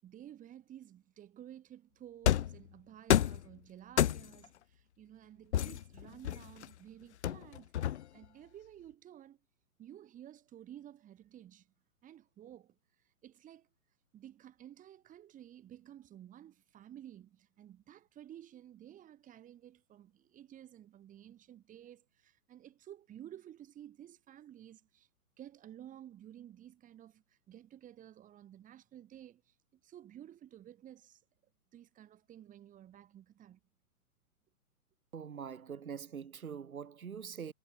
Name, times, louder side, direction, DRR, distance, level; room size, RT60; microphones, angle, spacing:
voice 1, 0.0-9.4 9.8-11.7 12.0-12.8 13.2-13.7 14.1-25.1 25.4-31.2 31.7-33.6, right 11 dB, 15° right, 6.4 m, -53 dB
sound 1, 2.3-2.6 3.1-3.5 4.0-4.5 5.5-6.7 7.2-8.2, left 11 dB, 45° left, 1.0 m, -29 dB
voice 2, 35.1-37.5, right 7 dB, 65° right, 5.7 m, -43 dB
figure-of-eight pair, 130°, 45 cm